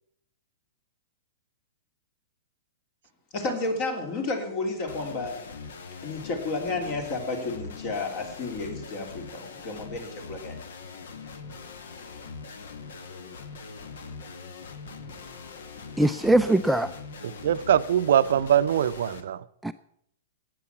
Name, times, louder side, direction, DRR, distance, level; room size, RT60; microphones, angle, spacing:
voice 1, 3.3-5.4 6.0-10.6, left 3 dB, 45° left, 3.3 m, -31 dB
sound 1, 4.9-19.2, left 4 dB, 65° left, 1.4 m, -42 dB
voice 2, 16.0-16.9 19.6-19.7, right 1 dB, 5° right, 0.4 m, -21 dB
voice 3, 17.2-19.4, right 10 dB, 65° right, 0.5 m, -23 dB
15.0 x 9.4 x 5.9 m
figure-of-eight pair, 105°, 0 cm